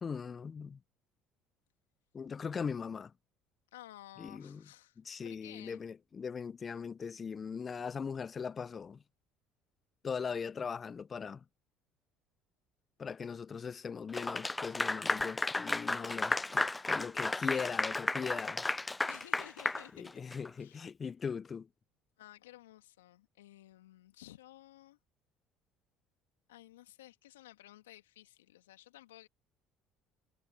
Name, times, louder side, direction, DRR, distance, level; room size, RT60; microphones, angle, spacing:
voice 1, 0.0-0.8 2.1-3.1 4.2-4.6 5.0-9.0 10.0-11.4 13.0-18.7 20.0-21.7, left 6 dB, 35° left, 1.0 m, -40 dB
voice 2, 3.7-5.8 15.9-16.6 19.1-20.1 20.6-20.8 22.2-25.0 26.5-29.3, left 15 dB, 85° left, 2.7 m, -55 dB
Clapping / Applause, 14.1-20.5, left 2 dB, 15° left, 0.4 m, -33 dB
hypercardioid pair, 65°, 0 cm